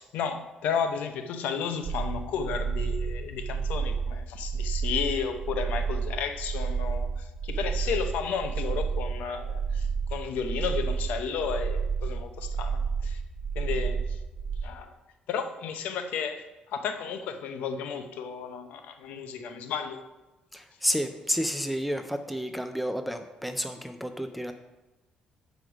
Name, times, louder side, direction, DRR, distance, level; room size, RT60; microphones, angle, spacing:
voice 1, 0.0-13.2 13.6-14.2 14.6-14.9 15.3-20.0, left 6 dB, 85° left, 8 dB, 0.6 m, -33 dB
sound 1, 1.8-14.6, right 5 dB, 65° right, 0.7 m, -30 dB
voice 2, 20.5-24.5, equal, ahead, 7 dB, 0.3 m, -30 dB
6.2 x 5.1 x 6.0 m, 1.1 s
cardioid pair, 170°, 3 cm